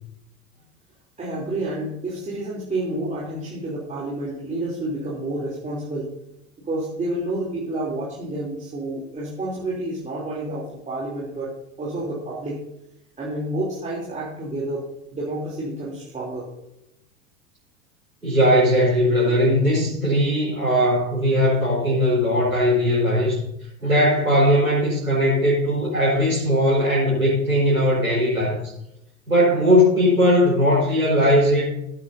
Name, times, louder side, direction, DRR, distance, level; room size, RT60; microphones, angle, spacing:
voice 1, 1.2-6.1 6.6-12.6 13.2-14.9 15.1-16.5, right 1 dB, 15° right, -7 dB, 3.2 m, -29 dB
voice 2, 18.2-23.4 23.8-28.7 29.3-31.7, equal, 85° right, -8 dB, 4.7 m, -19 dB
18.0 x 8.7 x 2.7 m, 0.82 s
figure-of-eight pair, 85°, 43 cm